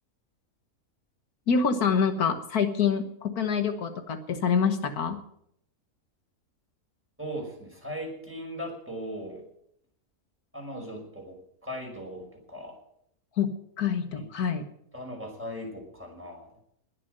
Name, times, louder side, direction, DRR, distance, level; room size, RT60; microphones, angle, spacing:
voice 1, 1.5-5.2 13.4-13.5 13.8-14.7, left 6 dB, 85° left, 8 dB, 1.8 m, -26 dB
voice 2, 7.2-9.4 10.5-12.8 14.2-14.3 14.9-16.5, equal, 10° right, 0 dB, 5.5 m, -38 dB
20.5 x 7.7 x 7.8 m, 0.72 s
omnidirectional pair, 1.6 m